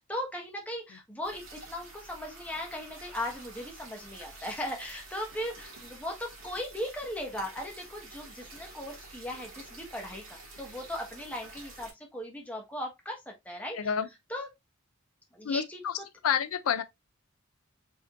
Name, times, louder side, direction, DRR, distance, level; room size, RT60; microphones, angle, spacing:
voice 1, 0.0-13.9 14.3-14.5 15.3-16.0, left 1 dB, 5° left, 1.3 m, -38 dB
sound 1, 1.2-11.9, right 2 dB, 75° right, 1.9 m, -49 dB
voice 2, 13.7-14.1 15.4-15.9 16.2-16.8, left 8 dB, 85° left, 0.4 m, -28 dB
4.7 x 3.8 x 2.4 m
head